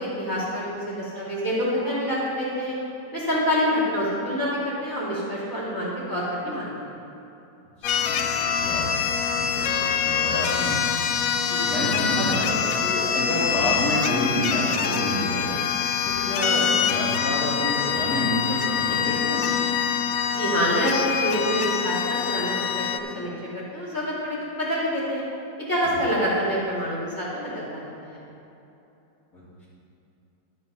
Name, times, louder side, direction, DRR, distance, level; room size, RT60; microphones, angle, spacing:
voice 1, 0.0-2.7 3.1-7.0 20.3-25.2 25.7-28.2, equal, 10° left, -8 dB, 2.8 m, -27 dB
sound 1, 7.8-23.0, left 7 dB, 75° left, 0.7 m, -25 dB
voice 2, 7.8-8.9 9.2-10.8 11.5-15.5 16.0-19.4 29.3-29.6, equal, 50° left, -14 dB, 3.4 m, -29 dB
12.0 x 8.6 x 4.3 m, 2.9 s
omnidirectional pair, 2.0 m